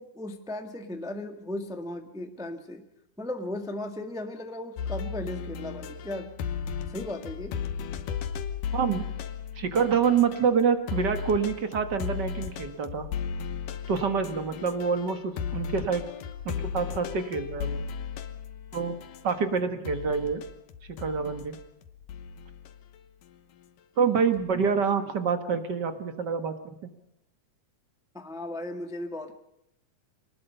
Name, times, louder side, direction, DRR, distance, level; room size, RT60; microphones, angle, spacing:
voice 1, 0.0-2.8 3.2-6.4 6.9-7.6 28.1-29.3, left 1 dB, 5° right, 6 dB, 0.6 m, -36 dB
sound 1, 4.8-10.6 10.9-19.5 19.8-23.0 24.3-24.6, left 7 dB, 80° left, 2.8 m, -36 dB
voice 2, 8.7-9.1 9.6-13.1 13.9-16.0 16.4-17.8 18.7-18.9 19.2-20.4 20.9-21.6 24.0-26.9, right 6 dB, 45° right, 9 dB, 1.5 m, -27 dB
24.0 x 19.5 x 5.5 m, 0.82 s
omnidirectional pair, 3.8 m